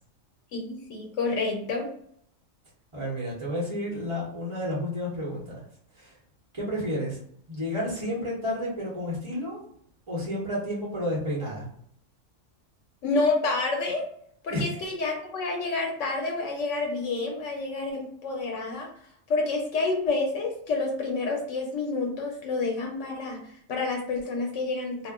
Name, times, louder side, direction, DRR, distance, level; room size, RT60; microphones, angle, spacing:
voice 1, 0.5-1.9 13.0-14.0 14.4-18.9 19.3-25.1, left 3 dB, 85° left, 1 dB, 1.0 m, -29 dB
voice 2, 2.9-5.6 6.0-6.1 6.5-7.2 7.5-9.6 10.1-11.7 14.5-14.8, equal, 30° right, -6 dB, 0.9 m, -31 dB
2.4 x 2.1 x 3.5 m, 0.65 s
omnidirectional pair, 1.2 m